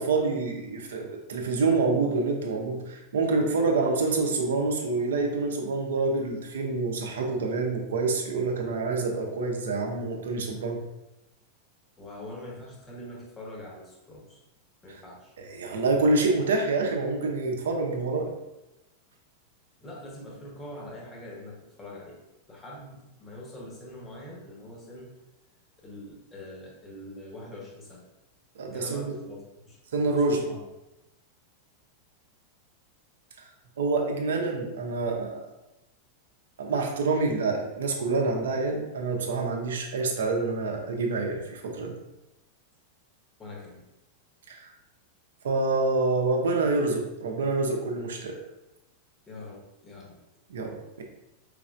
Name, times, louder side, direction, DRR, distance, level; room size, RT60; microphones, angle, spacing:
voice 1, 0.0-10.8 15.4-18.3 28.6-29.1 29.9-30.4 33.8-35.4 36.6-42.0 44.5-44.7 45.4-48.4 50.5-51.0, right 3 dB, 65° right, 2 dB, 0.7 m, -27 dB
voice 2, 12.0-14.4 14.8-15.3 19.8-22.2 22.5-25.1 25.8-28.0 28.7-29.8 30.1-30.7 43.4-43.8 49.3-50.2, left 1 dB, 20° left, -1 dB, 1.0 m, -43 dB
4.9 x 3.3 x 2.5 m, 0.95 s
figure-of-eight pair, 90°, 0 cm